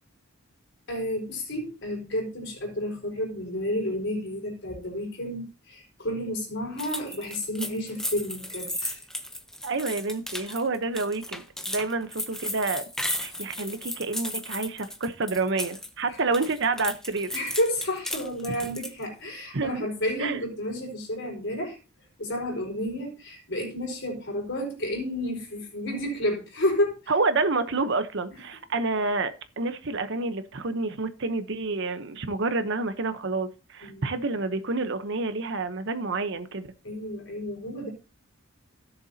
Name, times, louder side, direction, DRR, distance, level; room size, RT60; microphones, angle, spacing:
voice 1, 0.9-9.0 16.1-16.2 17.3-21.8 22.2-27.1 28.3-28.4 33.8-34.1 36.8-37.9, left 1 dB, 55° left, 4.6 m, -31 dB
sound 1, 6.8-15.9 16.2-19.0, left 1 dB, ahead, 0.8 m, -35 dB
voice 2, 9.6-17.4 18.5-18.6 19.5-19.8 20.2-20.4 27.1-36.7, right 3 dB, 55° right, 0.9 m, -29 dB
16.5 x 6.9 x 2.8 m
head